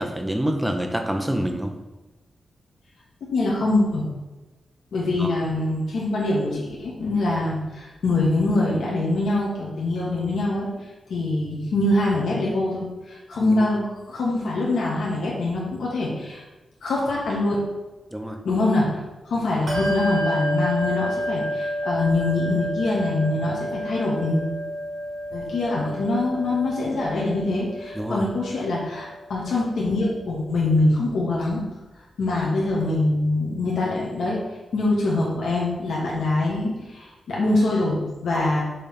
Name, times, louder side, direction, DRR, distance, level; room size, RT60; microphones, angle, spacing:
voice 1, 0.0-1.7 5.2-5.4 13.4-13.7 18.1-18.4 27.9-28.3, equal, 5° right, 4 dB, 0.7 m, -27 dB
voice 2, 3.2-4.0 4.9-10.7 11.1-16.4 16.8-17.6 18.4-24.4 25.3-31.6 32.2-34.4 34.7-38.6, left 2 dB, 85° left, -5 dB, 1.7 m, -24 dB
Bell, 19.7-29.7, equal, 40° right, 1.7 m, -30 dB
6.7 x 3.5 x 5.9 m, 1.1 s
wide cardioid pair, 160°, 0 cm